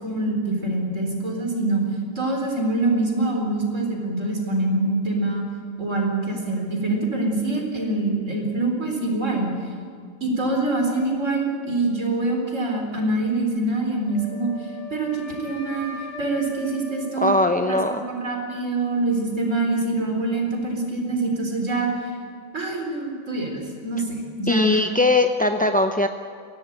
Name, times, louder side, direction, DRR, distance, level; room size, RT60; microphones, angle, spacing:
voice 1, 0.0-1.8 2.2-5.4 5.8-9.5 10.2-14.5 14.9-15.9 16.2-17.3 17.7-22.1 22.5-24.8, right 2 dB, 65° right, 2 dB, 4.5 m, -25 dB
Wind instrument woodwind instrument, 14.1-18.2, left 1 dB, 60° left, 5.4 m, -39 dB
voice 2, 17.2-18.0 24.5-26.1, left 2 dB, 10° left, 5 dB, 0.5 m, -20 dB
22.5 x 16.5 x 8.9 m, 2.1 s
omnidirectional pair, 1.4 m